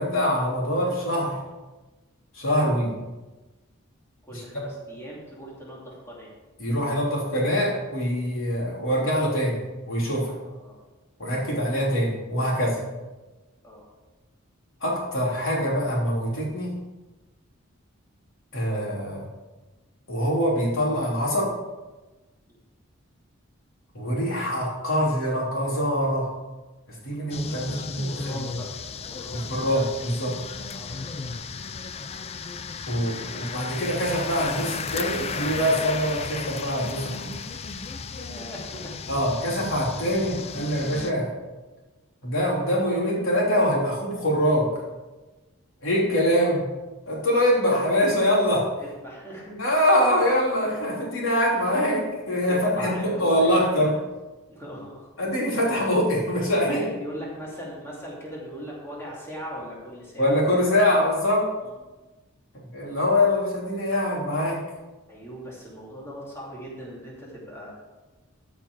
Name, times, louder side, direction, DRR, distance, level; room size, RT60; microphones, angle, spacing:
voice 1, 0.0-1.4 2.3-2.9 4.3-4.6 6.6-9.6 9.8-10.4 11.2-12.8 14.8-16.8 18.5-19.2 20.1-21.5 23.9-26.3 26.9-28.4 29.3-30.4 32.9-37.4 39.1-41.3 42.2-44.7 45.8-46.7 47.1-48.7 49.6-54.0 55.2-56.8 60.2-61.4 62.7-64.6, equal, 70° left, -3 dB, 3.5 m, -24 dB
voice 2, 4.2-6.3 10.5-10.8 13.6-13.8 22.5-22.6 27.5-29.4 30.7-31.0 38.1-39.2 46.4-46.5 48.8-49.6 52.5-53.9 54.5-55.1 56.7-60.3 61.6-61.7 65.1-67.7, equal, 10° left, -5 dB, 2.7 m, -40 dB
sound 1, 27.3-41.1, left 5 dB, 30° left, 0.4 m, -35 dB
13.5 x 5.9 x 4.8 m, 1.2 s
head